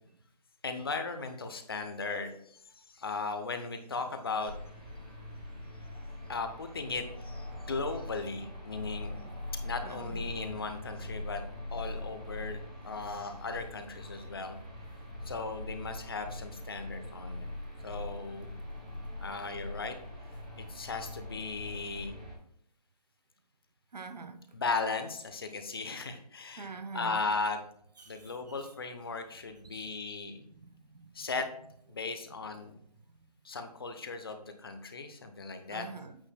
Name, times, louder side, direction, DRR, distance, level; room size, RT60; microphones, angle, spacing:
voice 1, 0.6-4.5 6.3-9.2 9.6-11.4 11.7-14.6 15.3-17.5 17.8-18.6 19.2-20.0 20.7-22.1 24.5-27.6 28.1-30.4 31.1-31.5 31.9-32.7 33.4-35.9, left 4 dB, 35° left, 0.8 m, -37 dB
sound 1, 4.4-22.3, left 1 dB, 10° right, 0.5 m, -42 dB
voice 2, 9.8-10.2 23.9-24.4 26.6-27.2 28.0-28.2 29.6-30.2 30.6-31.1 33.2-33.3 35.7-36.2, right 5 dB, 85° right, 0.9 m, -45 dB
8.7 x 8.0 x 2.3 m
hypercardioid pair, 170°, 21 cm